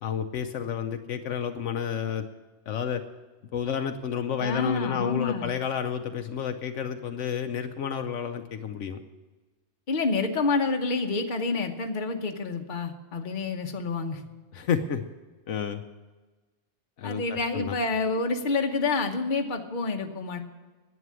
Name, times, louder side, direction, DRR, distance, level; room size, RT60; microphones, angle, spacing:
voice 1, 0.0-2.3 2.7-3.0 3.5-9.0 14.5-15.1 15.5-15.8 17.0-17.2 17.5-17.8, left 7 dB, 80° left, 6 dB, 1.1 m, -30 dB
voice 2, 4.4-5.5 9.9-14.2 17.0-20.4, left 3 dB, 45° left, 4 dB, 1.2 m, -28 dB
11.0 x 8.5 x 9.7 m, 1.3 s
omnidirectional pair, 1.3 m